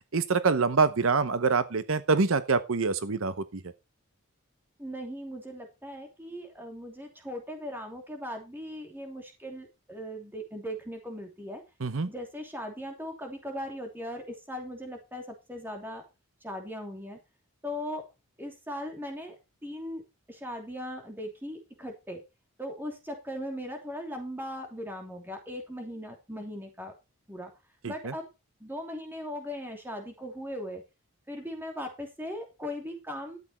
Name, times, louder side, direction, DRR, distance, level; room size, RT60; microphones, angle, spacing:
voice 1, 0.1-3.6 11.8-12.1 27.8-28.1, right 4 dB, 70° right, 0.8 m, -25 dB
voice 2, 4.8-11.6 12.1-16.0 16.4-17.2 17.6-18.0 18.4-20.0 20.3-22.2 22.6-26.9 27.3-27.5 27.9-28.3 28.6-30.8 31.3-33.4, equal, 10° right, 2.8 m, -38 dB
12.5 x 8.6 x 4.3 m
head